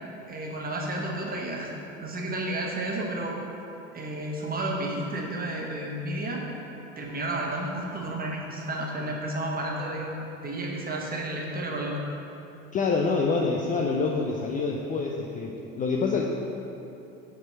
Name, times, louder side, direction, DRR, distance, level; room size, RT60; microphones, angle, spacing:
voice 1, 0.3-1.7 2.0-3.4 3.9-6.4 7.0-12.1, right 1 dB, 20° right, -1 dB, 1.3 m, -32 dB
voice 2, 12.7-16.2, left 4 dB, 20° left, 0 dB, 0.4 m, -26 dB
6.0 x 4.4 x 5.6 m, 2.9 s
figure-of-eight pair, 70°, 40 cm